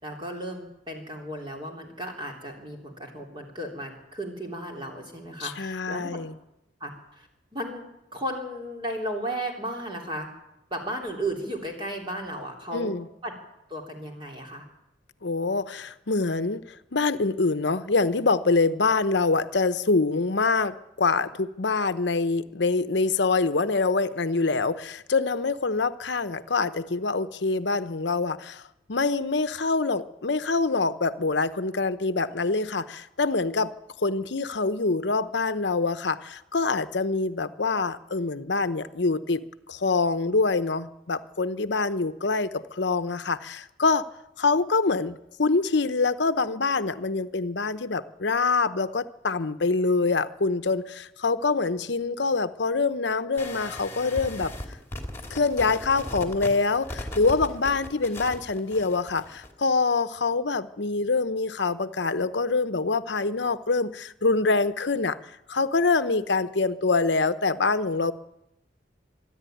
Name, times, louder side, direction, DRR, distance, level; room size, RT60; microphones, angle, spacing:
voice 1, 0.0-6.2 6.8-6.9 7.2-7.9 8.1-10.3 10.7-13.0 13.2-13.3 13.7-14.6, right 1 dB, 25° right, 1 dB, 3.4 m, -34 dB
voice 2, 5.4-6.3 12.7-13.1 15.2-28.6 28.9-33.7 34.0-44.1 44.4-54.5 55.3-65.2 65.5-68.1, left 3 dB, 70° left, 12 dB, 0.9 m, -25 dB
sound 1, 53.4-59.5, left 1 dB, 15° left, 2.4 m, -38 dB
25.5 x 11.0 x 9.3 m, 0.87 s
head